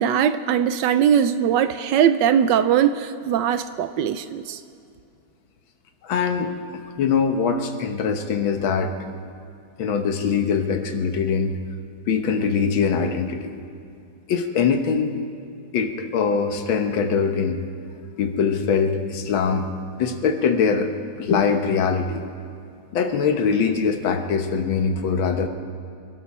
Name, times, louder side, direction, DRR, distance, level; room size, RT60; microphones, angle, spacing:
voice 1, 0.0-4.6, right 9 dB, 75° right, 12 dB, 1.1 m, -20 dB
voice 2, 6.0-6.5 7.0-8.9 9.8-11.6 12.1-13.6 14.3-15.1 15.7-17.6 18.2-19.7 20.0-20.9 21.2-22.2 22.9-25.5, left 6 dB, 80° left, 6 dB, 1.8 m, -22 dB
26.0 x 12.5 x 4.3 m, 2.5 s
omnidirectional pair, 2.1 m